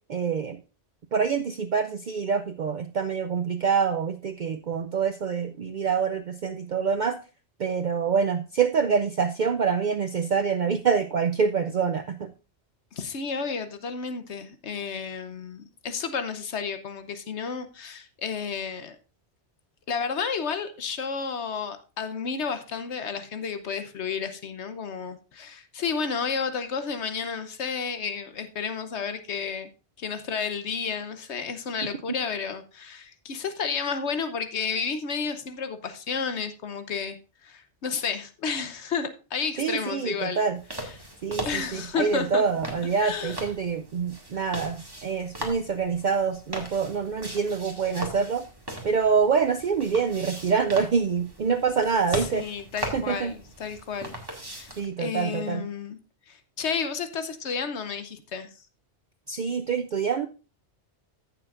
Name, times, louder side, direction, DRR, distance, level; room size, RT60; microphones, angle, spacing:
voice 1, 0.1-0.6 1.1-7.2 7.6-12.3 39.6-40.6 41.2-48.5 48.8-52.5 52.9-53.3 54.8-55.7 59.3-60.3, right 6 dB, 55° right, 9 dB, 0.6 m, -26 dB
voice 2, 12.9-19.0 19.9-29.7 30.0-37.2 37.4-40.5 40.7-40.9 41.4-42.4 43.0-43.4 52.1-54.2 54.5-54.7 55.0-56.0 56.3-58.6, left 6 dB, 80° left, 10 dB, 1.2 m, -31 dB
sound 1, 40.6-54.9, right 1 dB, 20° right, 2.0 m, -39 dB
15.0 x 6.9 x 2.5 m, 0.33 s
omnidirectional pair, 1.1 m